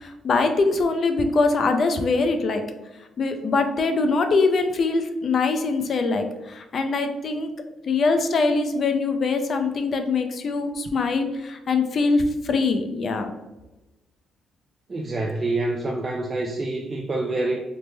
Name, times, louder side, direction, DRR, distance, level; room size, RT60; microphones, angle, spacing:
voice 1, 0.2-2.6 3.2-7.5 7.9-13.3, left 3 dB, 50° left, 6 dB, 0.4 m, -23 dB
voice 2, 14.9-17.6, right 2 dB, 30° right, 0 dB, 0.3 m, -26 dB
3.3 x 2.0 x 3.2 m, 1.0 s
cardioid pair, 90°, 0 cm